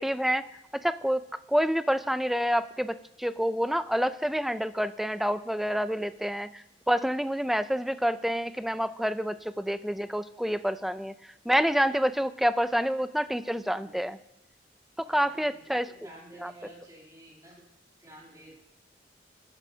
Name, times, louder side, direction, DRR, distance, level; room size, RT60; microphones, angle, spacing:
voice 1, 0.0-14.2 15.0-15.9 16.4-16.5, equal, ahead, 13 dB, 0.3 m, -28 dB
voice 2, 13.7-14.0 15.0-17.6 18.0-18.5, right 1 dB, 20° right, -4 dB, 2.9 m, -51 dB
21.0 x 9.6 x 2.7 m, 0.88 s
head